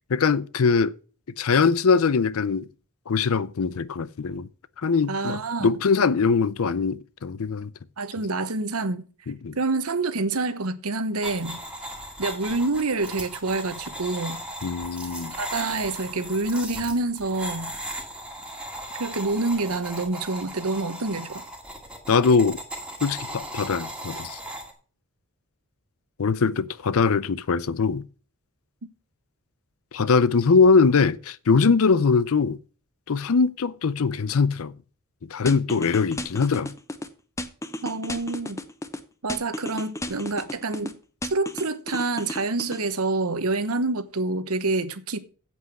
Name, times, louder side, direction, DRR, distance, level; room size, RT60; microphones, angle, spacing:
voice 1, 0.1-0.9 1.4-2.7 3.1-4.5 4.8-7.7 9.3-9.6 14.6-15.4 22.1-22.6 23.0-24.4 26.2-28.0 29.9-32.6 33.1-34.7 35.3-36.7, left 5 dB, 75° left, 0.5 m, -22 dB
voice 2, 5.1-5.7 8.0-9.0 9.6-11.6 12.2-14.4 15.3-17.7 19.0-21.4 37.8-38.6 39.2-40.9 41.3-45.2, right 3 dB, 85° right, 1.1 m, -27 dB
sound 1, 11.2-24.7, right 1 dB, 5° right, 2.0 m, -37 dB
sound 2, 35.5-37.1 37.4-39.0 39.3-40.9 41.2-42.8, left 1 dB, 15° left, 0.7 m, -33 dB
8.2 x 8.0 x 6.0 m
head